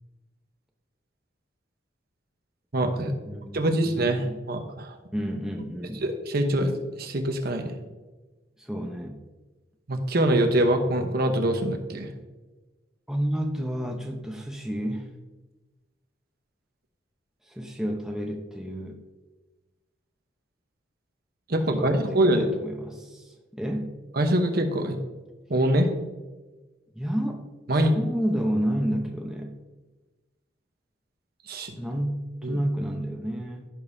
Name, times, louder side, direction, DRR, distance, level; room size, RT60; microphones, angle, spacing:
voice 1, 2.7-3.1 3.5-4.9 6.0-6.7 7.0-7.7 9.9-12.1 21.5-22.5 24.2-25.0 25.5-25.9 27.7-27.9 31.5-31.7 32.4-32.6, right 1 dB, 55° right, 5 dB, 1.0 m, -24 dB
voice 2, 3.2-4.4 5.1-6.0 8.6-9.2 13.1-15.1 17.4-19.0 21.7-23.9 26.9-29.6 31.8-33.7, equal, 5° right, 1 dB, 0.8 m, -31 dB
16.0 x 5.4 x 2.7 m, 1.2 s
head